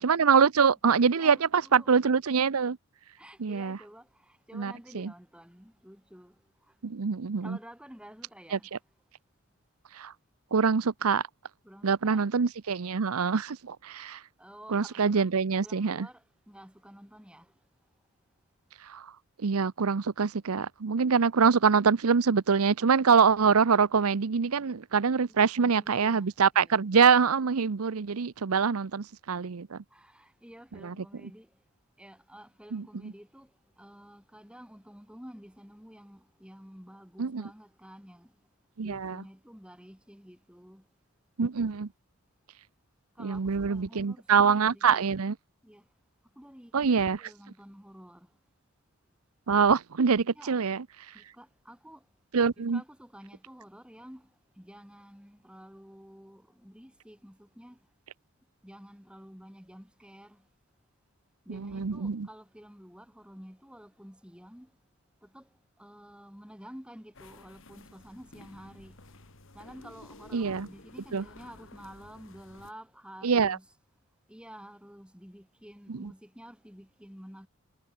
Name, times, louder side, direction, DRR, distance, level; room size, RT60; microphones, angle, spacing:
voice 1, 0.0-2.8 3.4-3.8 4.5-5.1 6.8-7.6 8.5-8.6 9.9-10.1 10.5-11.2 11.8-14.2 14.7-16.1 18.8-19.1 19.4-29.8 30.8-30.9 32.7-33.1 37.2-37.5 38.8-39.2 41.4-41.9 43.2-45.3 46.7-47.3 49.5-50.8 52.3-52.8 61.5-62.3 70.3-70.7 71.1-71.2 73.2-73.6 75.9-76.1, right 6 dB, 75° right, 0.7 m, -25 dB
voice 2, 1.2-1.9 3.2-6.4 6.7-6.8 7.4-8.7 11.6-12.2 14.4-15.3 15.6-17.5 25.3-26.8 29.9-31.5 32.0-33.5 33.8-38.3 38.8-40.8 43.2-45.1 45.6-45.8 46.4-46.9 47.2-48.3 50.3-50.6 51.1-52.0 52.6-57.8 58.6-60.4 61.5-64.7 65.2-65.5 65.8-69.0 69.5-73.7 74.3-77.5, equal, 5° right, 4.4 m, -50 dB
sound 1, 67.1-72.7, left 2 dB, 60° left, 2.4 m, -53 dB
head